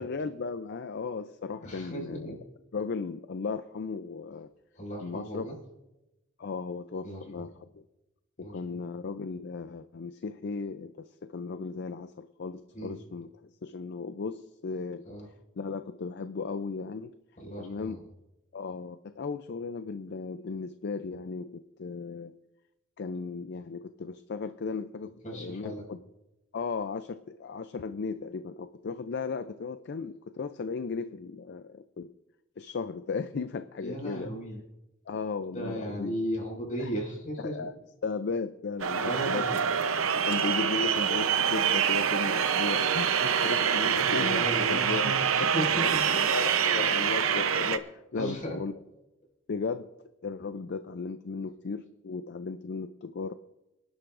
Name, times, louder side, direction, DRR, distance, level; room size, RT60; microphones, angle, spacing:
voice 1, 0.0-2.3 2.7-4.5 5.0-5.4 6.4-7.5 8.4-13.3 13.6-15.0 15.6-17.1 17.6-18.0 18.5-22.3 23.0-26.0 26.5-32.1 32.6-34.3 35.1-36.2 37.4-37.7 38.0-39.6 40.3-45.1 45.4-48.7 49.5-49.9 50.2-53.3, left 4 dB, 55° left, 11 dB, 0.5 m, -36 dB
voice 2, 1.6-2.4 4.7-5.5 7.0-7.5 8.4-8.6 12.7-13.0 15.1-15.3 17.4-18.0 25.2-25.8 33.8-34.6 35.5-37.7 39.0-39.6 43.9-46.1 48.1-48.6, equal, 40° left, -2 dB, 5.7 m, -36 dB
sound 1, 38.8-47.8, right 7 dB, 90° right, 0.7 m, -26 dB
27.0 x 11.5 x 2.5 m, 0.97 s
head